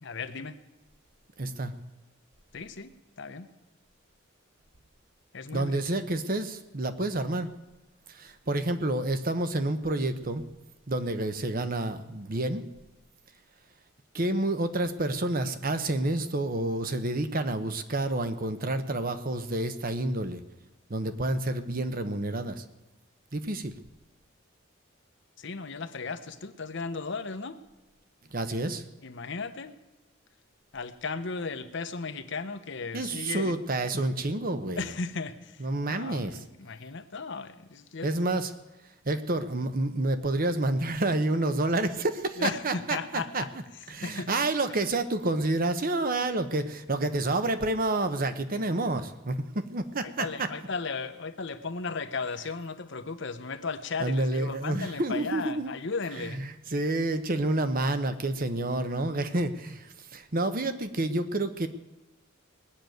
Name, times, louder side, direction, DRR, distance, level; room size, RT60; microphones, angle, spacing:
voice 1, 0.0-0.6 2.5-3.5 5.3-5.8 25.4-27.6 29.0-29.7 30.7-33.6 33.9-34.0 34.8-35.6 35.9-38.1 42.4-43.5 44.0-44.3 50.0-56.4, left 4 dB, 60° left, 9 dB, 0.9 m, -36 dB
voice 2, 1.4-1.7 5.5-7.5 8.1-10.5 10.9-12.7 14.1-20.4 20.9-22.6 23.3-23.7 28.3-28.8 32.9-34.9 35.6-36.4 38.0-38.5 39.0-43.4 43.9-50.5 54.0-55.7 56.2-61.7, right 2 dB, 45° right, 10 dB, 1.0 m, -29 dB
19.5 x 6.7 x 9.3 m, 1.0 s
head